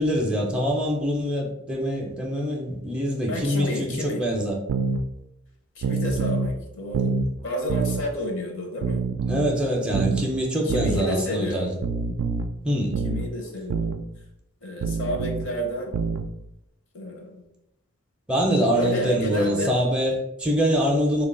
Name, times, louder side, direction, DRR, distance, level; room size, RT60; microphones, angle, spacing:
voice 1, 0.0-4.6 9.3-11.7 12.6-13.0 18.3-21.3, equal, 5° right, -2 dB, 0.4 m, -24 dB
voice 2, 3.3-4.2 5.8-7.2 7.4-9.0 10.6-11.8 13.0-13.9 14.6-15.9 16.9-17.4 18.7-19.7, left 1 dB, 60° left, 1 dB, 0.6 m, -30 dB
sound 1, 4.7-5.0 5.8-6.5 6.9-7.3 7.7-8.0 8.8-9.5 9.9-10.3 10.7-11.0 11.8-12.5 12.9-13.3 13.7-14.0 14.8-15.5 15.9-16.3, right 4 dB, 80° right, 0.3 m, -26 dB
3.5 x 2.2 x 3.7 m, 0.88 s
head